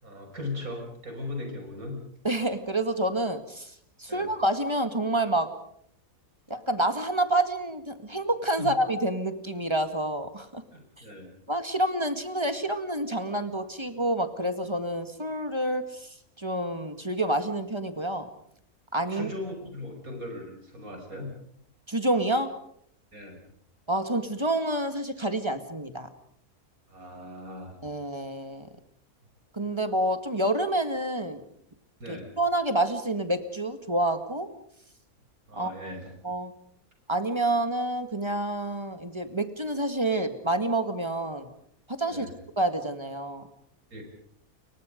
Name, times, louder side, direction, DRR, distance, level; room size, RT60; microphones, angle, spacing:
voice 1, 0.0-2.0 4.1-4.3 8.6-8.7 10.7-11.3 19.1-21.3 23.1-23.4 26.9-27.7 32.0-32.3 35.5-36.1 42.1-42.3 43.9-44.0, left 2 dB, 70° right, 3 dB, 6.1 m, -38 dB
voice 2, 2.2-5.5 6.5-10.6 11.5-18.3 18.9-19.3 21.9-22.5 23.9-26.1 27.8-28.7 29.5-31.4 32.1-34.5 35.6-35.7 36.2-36.5 37.1-41.5 42.0-42.3 42.6-43.4, right 1 dB, 20° right, 8 dB, 1.8 m, -28 dB
29.5 x 23.5 x 5.2 m, 0.68 s
omnidirectional pair, 1.6 m